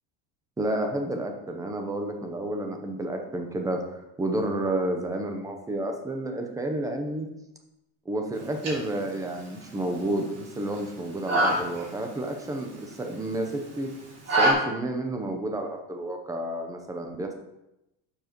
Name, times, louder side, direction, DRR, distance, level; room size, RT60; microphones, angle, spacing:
voice 1, 0.6-7.3 8.1-13.9 14.3-17.3, right 1 dB, 10° right, 3 dB, 0.8 m, -30 dB
sound 1, 8.3-14.5, right 1 dB, 35° right, 2.8 m, -29 dB
11.5 x 7.4 x 3.1 m, 0.89 s
cardioid pair, 165°, 44 cm